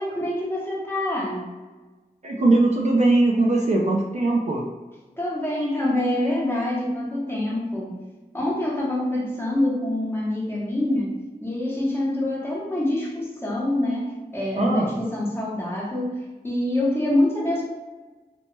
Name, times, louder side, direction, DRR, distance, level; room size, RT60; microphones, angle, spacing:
voice 1, 0.0-1.5 5.2-7.9 8.3-17.6, left 1 dB, 15° left, -5 dB, 0.9 m, -26 dB
voice 2, 2.2-4.6 14.6-15.0, right 2 dB, 45° right, -2 dB, 0.4 m, -20 dB
2.9 x 2.0 x 3.2 m, 1.2 s
wide cardioid pair, 65°, 16 cm